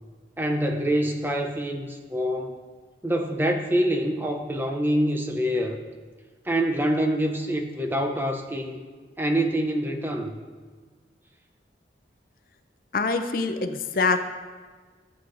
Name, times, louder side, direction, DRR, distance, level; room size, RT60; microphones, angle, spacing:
voice 1, 0.4-2.6 3.0-5.8 6.4-8.9 9.2-10.3, right 1 dB, 10° right, 4 dB, 0.5 m, -25 dB
voice 2, 12.9-14.2, left 4 dB, 50° left, 7 dB, 0.5 m, -24 dB
14.0 x 7.7 x 2.6 m, 1.5 s
head